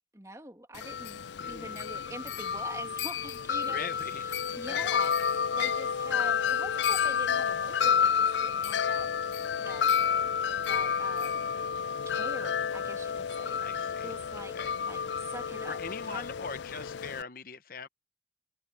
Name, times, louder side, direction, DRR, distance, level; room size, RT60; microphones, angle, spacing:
voice 1, 0.1-9.1 9.6-9.9 10.6-11.5 12.1-15.8 16.1-16.3, right 1 dB, 15° right, 2.5 m, -45 dB
Wind chime, 0.7-17.2, left 7 dB, 75° left, 0.4 m, -30 dB
voice 2, 1.4-1.8 3.7-4.2 4.7-5.0 13.6-14.7 15.7-17.9, left 5 dB, 50° left, 0.9 m, -41 dB
head